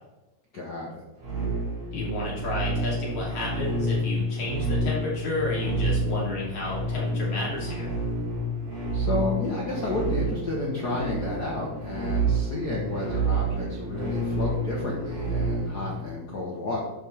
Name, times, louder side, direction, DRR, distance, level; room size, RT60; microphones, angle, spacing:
voice 1, 0.5-1.0 8.9-16.8, left 2 dB, 65° left, -3 dB, 1.0 m, -31 dB
sound 1, 1.2-16.0, right 1 dB, 35° right, 3.4 m, -29 dB
voice 2, 1.9-7.9, left 2 dB, 45° left, -6 dB, 4.0 m, -31 dB
11.5 x 5.9 x 3.5 m, 1.0 s
omnidirectional pair, 3.8 m